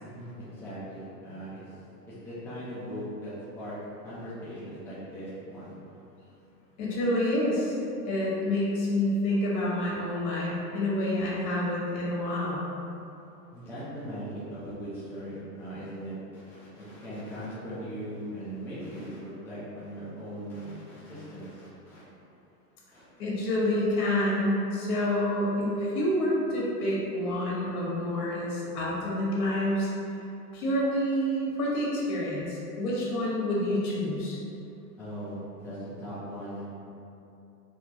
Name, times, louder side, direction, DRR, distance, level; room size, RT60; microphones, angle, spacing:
voice 1, 0.0-1.6 2.1-3.8 4.0-5.8 13.5-22.0 22.9-23.0 35.0-36.7, equal, 5° left, -11 dB, 0.5 m, -39 dB
voice 2, 6.8-7.8 8.0-12.7 23.2-29.9 30.5-34.4, left 1 dB, 65° left, -5 dB, 1.5 m, -28 dB
4.3 x 2.9 x 2.8 m, 2.8 s
hypercardioid pair, 135°, 48 cm